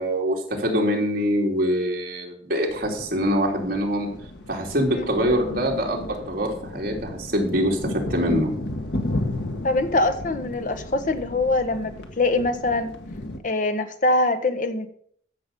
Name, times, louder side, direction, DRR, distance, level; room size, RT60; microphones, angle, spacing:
voice 1, 0.0-4.1 4.5-8.5, equal, 55° right, -1 dB, 3.0 m, -24 dB
sound 1, 2.7-13.4, left 1 dB, 85° left, 1.5 m, -34 dB
voice 2, 9.6-12.9 13.4-14.9, left 2 dB, 45° left, 8 dB, 1.2 m, -23 dB
14.0 x 6.9 x 5.4 m, 0.63 s
head